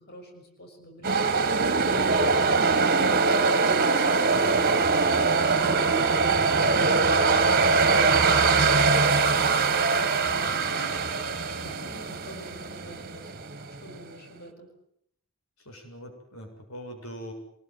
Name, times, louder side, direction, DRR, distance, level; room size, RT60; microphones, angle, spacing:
voice 1, 0.0-13.3 13.8-14.7, equal, 50° left, 3 dB, 6.5 m, -45 dB
sound 1, 1.0-14.0, right 4 dB, 45° right, 2.1 m, -22 dB
voice 2, 15.6-17.3, equal, 85° left, 4 dB, 7.7 m, -42 dB
26.0 x 20.5 x 9.6 m, 0.73 s
head